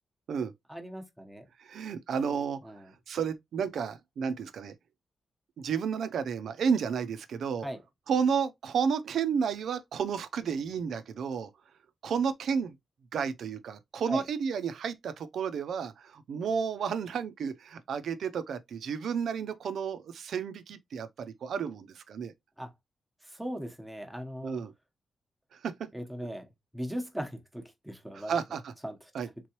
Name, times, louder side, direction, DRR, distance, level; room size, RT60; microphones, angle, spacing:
voice 1, 0.7-1.4 2.6-2.9 7.6-7.8 14.1-14.2 22.6-22.7 23.2-24.6 25.9-26.4 26.7-28.4 28.8-29.0, equal, 5° right, 0.9 m, -38 dB
voice 2, 1.6-2.6 3.1-4.7 5.6-7.7 8.1-11.5 12.0-12.7 13.1-22.3 24.4-24.7 25.6-25.7 28.1-28.7 29.1-29.3, right 6 dB, 80° right, 0.5 m, -31 dB
3.7 x 3.0 x 2.9 m
cardioid pair, 105°, 0 cm